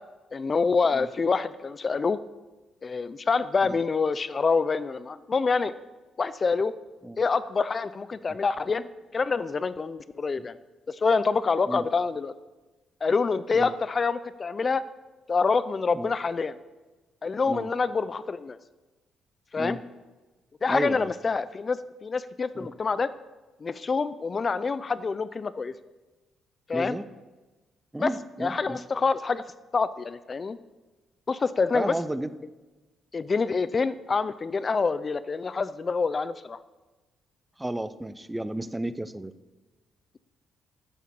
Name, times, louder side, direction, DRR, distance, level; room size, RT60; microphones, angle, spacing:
voice 1, 0.3-2.2 2.8-5.7 6.2-6.7 7.2-8.9 9.1-10.5 10.9-12.3 13.0-14.8 15.3-16.6 17.2-18.6 19.5-19.8 20.6-23.1 23.6-25.7 26.7-27.0 28.0-28.1 28.4-29.4 29.7-30.6 31.3-31.9 33.1-36.6, left 4 dB, 35° left, 15 dB, 0.4 m, -26 dB
voice 2, 20.7-21.1 22.5-22.7 26.7-27.0 27.9-28.8 31.7-32.3 37.6-39.3, right 1 dB, 10° right, 14 dB, 0.6 m, -32 dB
10.0 x 7.5 x 7.0 m, 1.2 s
cardioid pair, 90°, 0 cm